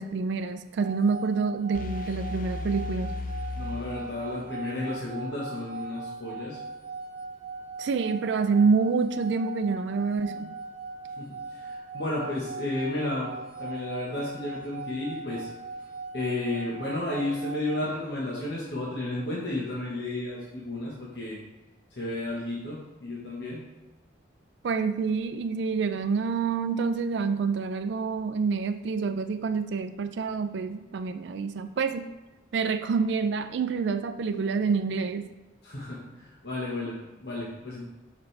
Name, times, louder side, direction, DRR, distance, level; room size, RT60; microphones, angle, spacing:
voice 1, 0.0-3.1 7.8-10.5 24.6-32.1 32.5-35.3, right 5 dB, 70° right, 8 dB, 0.3 m, -27 dB
sound 1, 0.8-17.9, right 4 dB, 30° right, 1.7 m, -40 dB
sound 2, 1.7-4.7, left 3 dB, 45° left, 0.4 m, -36 dB
voice 2, 3.6-6.6 11.2-13.3 13.6-15.5 16.1-21.4 22.0-23.6 35.6-37.8, left 2 dB, 60° left, -5 dB, 1.2 m, -32 dB
7.0 x 5.3 x 3.3 m, 1.1 s
head